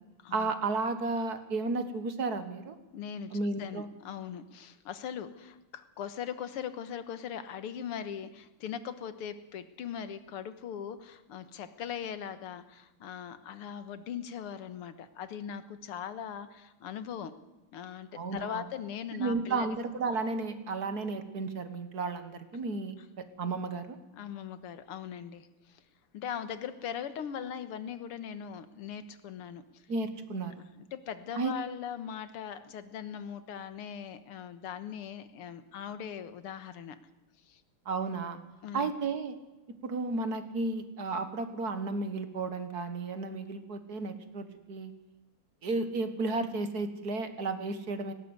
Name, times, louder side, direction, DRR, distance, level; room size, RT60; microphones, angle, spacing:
voice 1, 0.3-2.8 3.3-3.9 18.1-18.6 19.2-24.0 29.9-30.5 31.4-31.6 37.9-38.4 38.7-39.4 39.7-44.9 45.6-48.1, right 3 dB, 50° right, 10 dB, 1.8 m, -33 dB
voice 2, 2.9-17.3 17.7-19.7 24.2-25.8 26.1-29.8 30.8-37.0 37.5-37.6 38.6-38.9, left 8 dB, 90° left, 12 dB, 2.2 m, -40 dB
18.5 x 17.5 x 8.1 m, 1.0 s
omnidirectional pair, 2.4 m